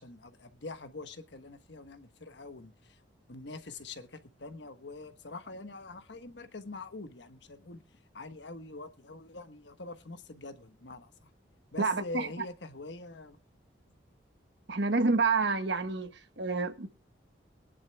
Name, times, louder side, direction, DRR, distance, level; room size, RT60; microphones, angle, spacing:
voice 1, 0.0-2.7 3.3-7.8 8.1-11.3 11.7-13.4, left 3 dB, 70° left, 1.2 m, -44 dB
voice 2, 11.8-12.3 14.7-16.1 16.4-16.9, right 4 dB, 70° right, 1.2 m, -28 dB
22.5 x 11.0 x 2.2 m
head